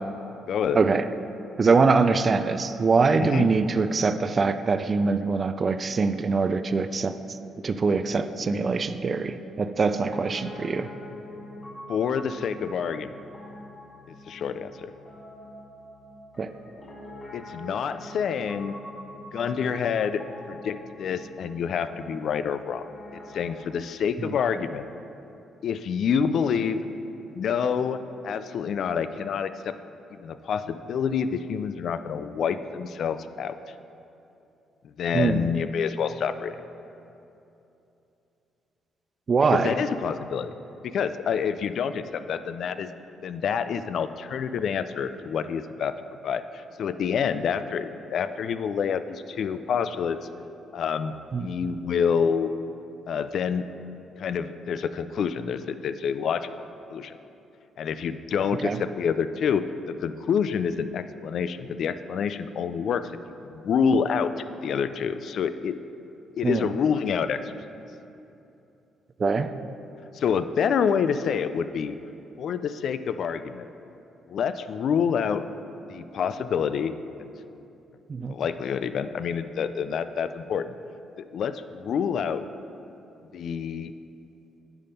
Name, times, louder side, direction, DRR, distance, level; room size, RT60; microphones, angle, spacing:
voice 1, 0.5-0.8 3.1-3.5 11.9-13.1 14.1-14.9 17.3-18.8 19.3-22.9 23.1-24.9 25.6-26.8 27.3-29.7 30.1-33.5 35.0-36.6 39.5-40.5 40.8-42.9 43.2-45.9 46.2-50.2 50.7-52.5 53.1-53.7 54.2-56.5 56.9-57.2 57.8-63.0 63.5-64.3 64.6-65.8 66.4-67.5 70.1-72.0 72.4-73.7 74.3-75.4 75.9-76.9 78.3-80.7 81.2-82.4 83.3-83.9, left 7 dB, 65° left, 11 dB, 0.3 m, -27 dB
voice 2, 1.6-7.2 7.6-10.9 16.4-16.5 24.2-24.3 35.1-35.5 39.3-39.8 51.3-51.5 58.6-58.8 66.4-66.7 69.2-69.5 78.1-78.4, right 4 dB, 40° right, 11 dB, 0.3 m, -23 dB
Piano, 9.9-23.6, left 1 dB, 30° left, 1.4 m, -44 dB
9.8 x 3.5 x 5.2 m, 2.8 s
cardioid pair, 90°, 0 cm